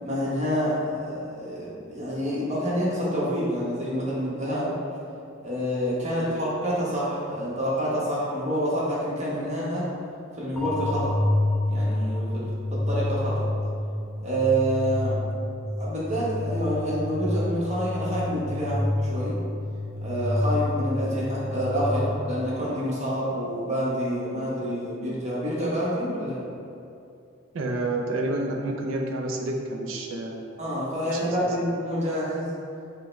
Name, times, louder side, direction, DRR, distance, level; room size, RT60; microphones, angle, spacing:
voice 1, 0.0-4.7 5.4-9.9 10.4-11.2 11.6-13.5 14.2-15.2 15.8-18.8 19.1-19.4 20.0-26.4 30.6-32.5, equal, 35° right, -8 dB, 1.0 m, -27 dB
sound 1, 10.6-22.5, left 1 dB, 5° left, 0.3 m, -28 dB
voice 2, 27.5-30.4 31.1-31.5, right 2 dB, 75° right, 1 dB, 0.5 m, -29 dB
5.5 x 2.2 x 3.1 m, 2.6 s
head